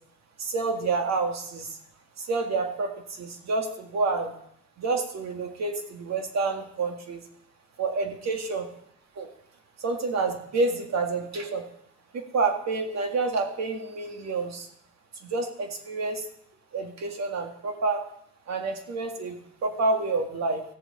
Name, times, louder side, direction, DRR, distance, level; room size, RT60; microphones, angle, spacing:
voice 1, 0.4-1.8 2.2-4.3 4.8-7.2 7.8-8.7 9.2-9.3 9.8-11.6 12.1-14.7 15.2-16.3 16.7-18.1 18.5-20.6, right 3 dB, 60° right, 4 dB, 2.0 m, -28 dB
16.0 x 7.0 x 4.2 m, 0.71 s
cardioid pair, 90°, 30 cm